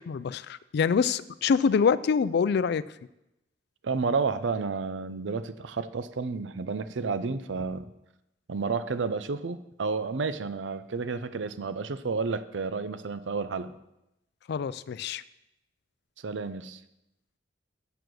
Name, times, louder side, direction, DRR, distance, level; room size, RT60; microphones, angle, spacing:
voice 1, 0.0-2.8 14.5-15.2, left 6 dB, 65° left, 17 dB, 0.3 m, -25 dB
voice 2, 3.8-7.9 8.5-13.7 16.2-16.8, right 4 dB, 90° right, 13 dB, 0.6 m, -31 dB
7.8 x 7.0 x 6.2 m, 0.90 s
head